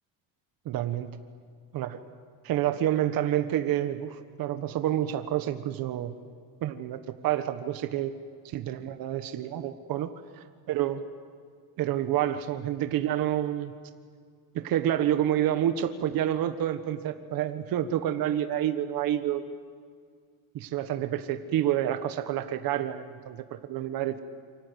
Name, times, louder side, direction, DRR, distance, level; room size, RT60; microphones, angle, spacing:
voice 1, 0.6-1.1 1.7-2.0 2.4-6.1 6.6-8.1 8.4-10.1 10.4-11.0 11.8-13.7 14.5-19.4 20.5-24.2, right 11 dB, 65° right, 8 dB, 1.4 m, -28 dB
28.0 x 25.5 x 8.2 m, 2.1 s
cardioid pair, 140°, 37 cm